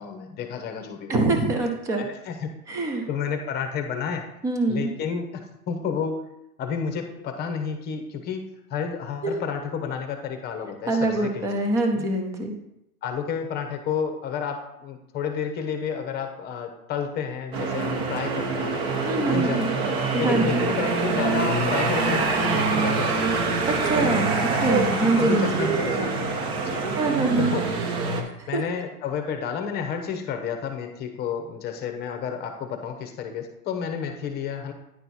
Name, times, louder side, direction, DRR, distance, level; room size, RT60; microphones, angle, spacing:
voice 1, 0.0-1.2 2.0-2.5 3.1-4.3 4.7-5.4 5.7-6.2 6.6-11.5 11.9-12.1 13.0-18.8 19.2-19.8 20.2-23.3 25.2-26.9 27.4-27.6 28.5-34.7, left 6 dB, 20° left, 5 dB, 0.9 m, -31 dB
voice 2, 1.1-2.1 2.7-3.1 4.4-4.9 9.2-9.3 10.9-12.5 19.1-19.7 20.1-20.7 23.7-24.3 24.6-25.6 27.0-27.5 28.4-28.6, right 2 dB, 10° right, 3 dB, 0.4 m, -24 dB
sound 1, 17.5-28.2, right 4 dB, 40° right, 1.3 m, -25 dB
9.9 x 4.5 x 4.2 m, 0.82 s
hypercardioid pair, 130°, 46 cm